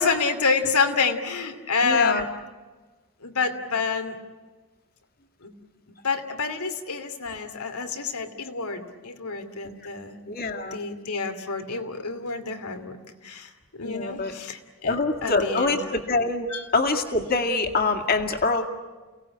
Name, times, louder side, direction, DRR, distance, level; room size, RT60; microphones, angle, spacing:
voice 1, 0.0-2.3 3.2-4.1 5.4-5.5 6.0-10.2 10.7-13.0 13.2-13.5 13.8-15.8 16.5-16.6, left 4 dB, 90° left, 6 dB, 2.7 m, -28 dB
voice 2, 1.8-2.2 9.6-9.8 10.3-10.8 13.8-14.3 14.9-18.6, left 3 dB, 40° left, 4 dB, 2.2 m, -25 dB
30.0 x 18.0 x 10.0 m, 1.3 s
head